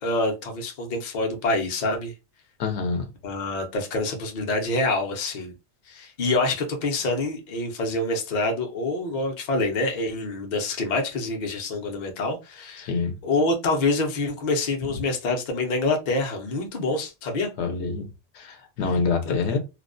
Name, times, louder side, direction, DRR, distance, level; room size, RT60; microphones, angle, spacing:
voice 1, 0.0-2.1 3.2-5.5 5.9-12.9 13.2-17.5 19.2-19.3, left 2 dB, 50° left, 0.6 m, -26 dB
voice 2, 2.6-3.1 12.9-13.2 17.6-18.1 18.3-19.6, left 4 dB, 75° left, 0.9 m, -26 dB
2.3 x 2.1 x 2.5 m
omnidirectional pair, 1.2 m